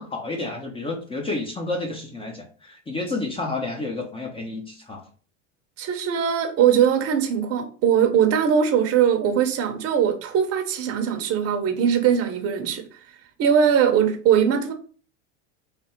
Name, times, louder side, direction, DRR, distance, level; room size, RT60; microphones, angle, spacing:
voice 1, 0.0-5.0, left 2 dB, 15° left, 0.7 m, -30 dB
voice 2, 5.8-12.9 13.4-14.7, right 8 dB, 40° right, 0.8 m, -21 dB
3.4 x 2.3 x 4.4 m
supercardioid pair, 110°, 37 cm